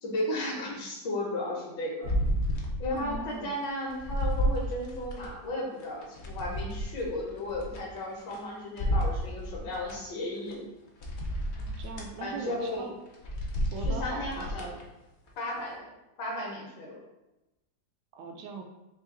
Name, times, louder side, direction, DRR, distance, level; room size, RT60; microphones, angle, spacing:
voice 1, 0.0-2.1 2.8-10.6 12.2-12.8 13.8-14.7 15.4-15.9 16.2-17.0, left 1 dB, 80° left, -2 dB, 1.6 m, -34 dB
sound 1, 2.0-3.2 3.6-5.3 5.8-8.4 8.8-10.0 10.5-10.6 11.0-12.1 12.6-12.8 13.1-14.8 15.3-15.4, equal, 60° left, 0.7 m, -31 dB
voice 2, 3.0-3.5 11.6-12.9 13.7-14.8 18.1-18.6, right 4 dB, 75° right, 3 dB, 1.1 m, -40 dB
3.8 x 2.8 x 3.7 m, 0.96 s
omnidirectional pair, 1.9 m